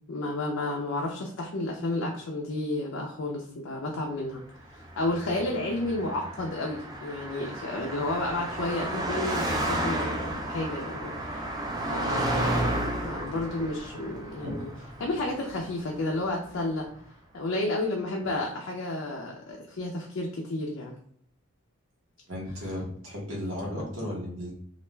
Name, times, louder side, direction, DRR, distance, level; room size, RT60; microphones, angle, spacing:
voice 1, 0.0-4.4 4.7-11.5 11.9-14.7 15.0-16.9 17.3-20.9, left 2 dB, 65° left, -1 dB, 0.4 m, -31 dB
Car passing by, 4.8-16.3, right 1 dB, 20° right, 0.4 m, -32 dB
voice 2, 22.3-24.5, left 1 dB, 70° right, -3 dB, 0.8 m, -34 dB
2.4 x 2.2 x 3.1 m, 0.63 s
head